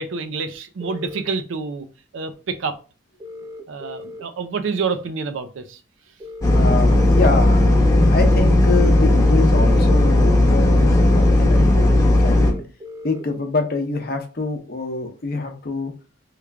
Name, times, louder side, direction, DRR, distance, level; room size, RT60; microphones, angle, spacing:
voice 1, 0.0-1.9 2.1-2.7 3.7-5.8, right 4 dB, 85° right, 9 dB, 0.5 m, -27 dB
sound 1, 0.8-1.2 3.2-4.2 6.2-7.2 9.2-10.2 12.2-13.2, left 2 dB, 20° right, 0.5 m, -37 dB
sound 2, 6.4-12.5, left 1 dB, 15° left, 0.7 m, -15 dB
voice 2, 6.5-7.7 8.1-12.6 13.0-15.9, left 3 dB, 50° left, 4 dB, 0.6 m, -25 dB
3.2 x 2.4 x 3.3 m, 0.34 s
head